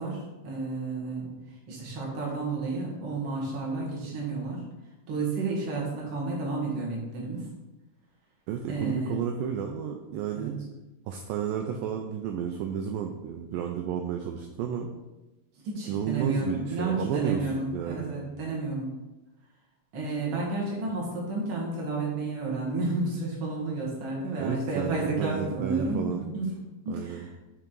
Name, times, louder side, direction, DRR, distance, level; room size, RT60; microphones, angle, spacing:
voice 1, 0.0-4.7 5.1-7.5 8.7-9.2 10.3-10.5 15.6-18.9 19.9-26.5 26.8-27.3, right 3 dB, 45° right, -4 dB, 2.0 m, -31 dB
voice 2, 8.5-10.5 11.1-14.9 15.9-18.3 24.4-26.2 26.9-27.3, right 8 dB, 85° right, 4 dB, 2.0 m, -32 dB
8.8 x 3.7 x 4.5 m, 1.1 s
omnidirectional pair, 4.4 m